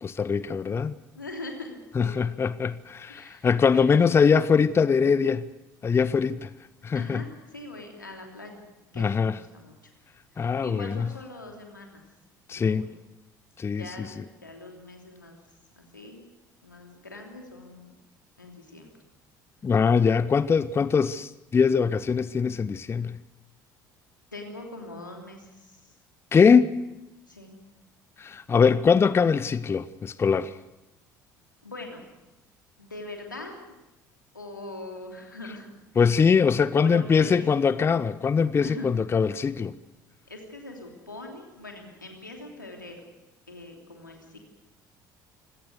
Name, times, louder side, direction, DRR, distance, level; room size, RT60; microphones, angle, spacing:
voice 1, 0.0-1.0 1.9-5.5 5.8-6.5 6.8-7.2 9.0-9.4 10.4-11.1 12.5-12.9 13.6-14.2 19.6-23.2 26.3-26.7 28.2-30.6 36.0-39.7, left 6 dB, 25° left, 0.7 m, -22 dB
voice 2, 1.1-2.2 3.1-3.5 3.7-4.3 6.9-8.6 8.9-9.9 10.3-12.0 12.5-12.9 13.7-15.4 15.8-16.2 16.6-17.9 18.4-18.9 24.3-25.9 27.3-27.6 31.6-32.0 32.8-33.6 34.3-35.7 36.8-37.6 38.6-38.9 40.3-43.0 43.5-44.4, left 2 dB, 85° left, 3.1 m, -42 dB
25.5 x 17.5 x 6.8 m
figure-of-eight pair, 60°, 10 cm